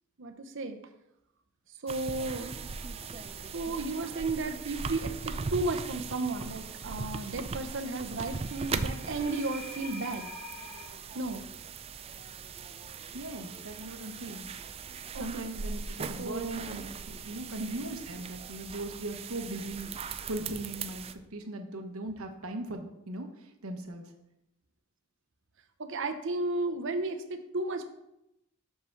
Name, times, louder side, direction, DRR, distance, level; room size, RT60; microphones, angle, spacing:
voice 1, 0.2-0.8 1.8-2.6 3.5-10.3 11.1-11.4 15.1-15.5 16.2-16.9 25.8-27.8, right 2 dB, 60° right, 7 dB, 0.8 m, -34 dB
sound 1, 1.9-21.1, right 5 dB, 30° right, 0.3 m, -39 dB
sound 2, 2.2-10.9, left 1 dB, 30° left, 1.8 m, -50 dB
voice 2, 13.1-14.5 15.2-24.0, right 1 dB, 80° right, 5 dB, 1.1 m, -39 dB
5.8 x 5.6 x 5.8 m, 0.87 s
head